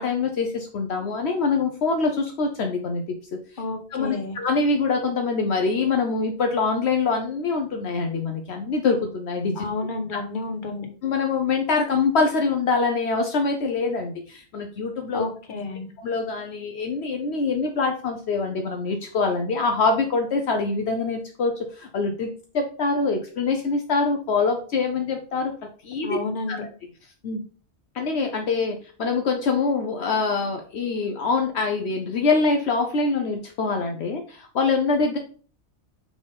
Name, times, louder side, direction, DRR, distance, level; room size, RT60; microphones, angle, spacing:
voice 1, 0.0-3.0 3.5-3.6 3.9-9.7 10.1-10.2 11.0-15.2 16.0-25.5 25.8-26.2 26.5-26.7 27.2-27.4 27.9-35.2, left 4 dB, 70° left, 4 dB, 1.0 m, -24 dB
voice 2, 3.6-4.4 9.6-10.9 15.1-15.9 26.0-26.6, left 3 dB, 45° left, 5 dB, 1.3 m, -30 dB
6.2 x 3.7 x 5.2 m, 0.41 s
omnidirectional pair, 1.2 m